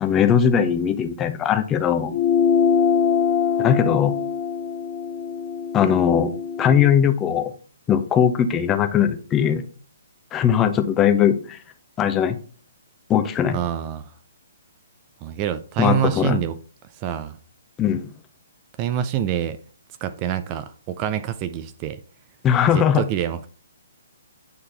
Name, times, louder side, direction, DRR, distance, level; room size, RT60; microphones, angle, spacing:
voice 1, 0.0-2.1 3.6-4.1 5.7-7.5 7.9-9.6 10.3-11.6 12.0-12.4 13.1-13.6 15.8-16.4 17.8-18.1 22.4-23.0, left 8 dB, 20° left, 0.6 m, -19 dB
sound 1, 2.1-6.9, left 6 dB, 35° left, 0.9 m, -23 dB
voice 2, 13.5-14.1 15.2-16.6 17.0-17.4 18.8-19.6 20.0-22.0 22.7-23.5, right 10 dB, 30° right, 0.4 m, -26 dB
8.7 x 4.1 x 3.3 m
figure-of-eight pair, 130°, 0 cm